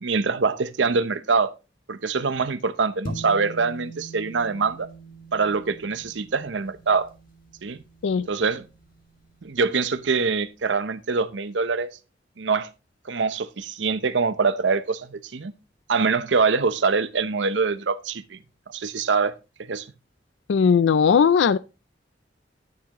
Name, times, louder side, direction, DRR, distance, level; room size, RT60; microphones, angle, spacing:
voice 1, 0.0-1.5 1.9-4.9 5.3-7.1 7.6-7.8 8.3-8.7 9.4-11.9 12.4-12.7 13.1-15.5 15.9-18.4 18.7-19.3 19.6-19.9, right 4 dB, 90° right, 0.7 m, -24 dB
sound 1, 3.0-9.6, right 2 dB, 50° left, 2.3 m, -42 dB
voice 2, 20.5-21.6, left 6 dB, 85° left, 0.4 m, -18 dB
9.6 x 9.3 x 3.0 m
head